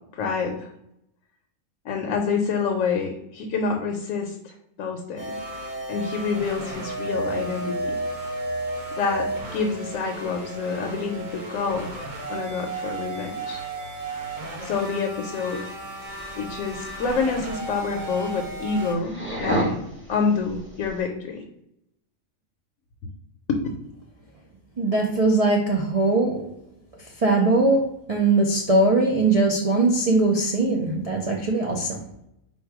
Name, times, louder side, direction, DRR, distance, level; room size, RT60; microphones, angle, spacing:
voice 1, 0.1-0.7 1.8-5.4 5.9-8.0 9.0-11.9 12.3-13.6 14.6-15.6 16.4-19.8 20.1-21.4 23.5-23.6, left 5 dB, 70° left, 2 dB, 1.0 m, -27 dB
sound 1, 5.2-18.9, right 2 dB, 35° right, 0.9 m, -33 dB
sound 2, 16.1-21.0, equal, 10° right, 1.0 m, -33 dB
voice 2, 24.8-26.4 27.2-32.0, right 2 dB, 65° right, -1 dB, 0.3 m, -21 dB
4.5 x 2.2 x 4.6 m, 0.80 s
omnidirectional pair, 1.5 m